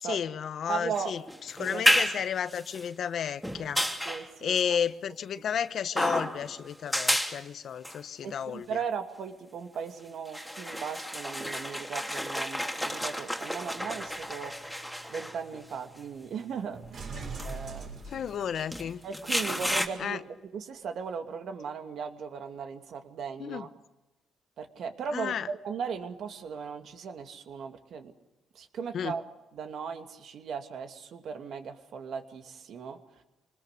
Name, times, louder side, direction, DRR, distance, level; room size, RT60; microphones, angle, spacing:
voice 1, 0.0-1.2 1.5-3.8 4.4-8.8 17.1-17.3 18.1-19.0 20.0-20.2 23.4-23.7 25.1-25.5 28.9-29.2, left 8 dB, 60° left, 1.0 m, -32 dB
voice 2, 0.7-1.1 1.6-1.8 4.0-4.6 8.2-14.5 15.1-17.1 17.4-17.9 19.0-20.2 20.5-23.7 24.6-28.1 28.5-29.2 29.5-33.0, right 6 dB, 65° right, 2.5 m, -37 dB
sound 1, 0.9-2.9 3.4-4.3 6.0-6.6 6.9-7.4 7.8-8.0 9.7-9.8 10.3-15.6 16.3-16.4 17.4-17.6 18.5-19.9, equal, ahead, 2.9 m, -31 dB
sound 2, 13.8-19.1 19.9-20.0, right 3 dB, 50° right, 6.0 m, -44 dB
26.0 x 20.5 x 6.7 m
cardioid pair, 90°, 0 cm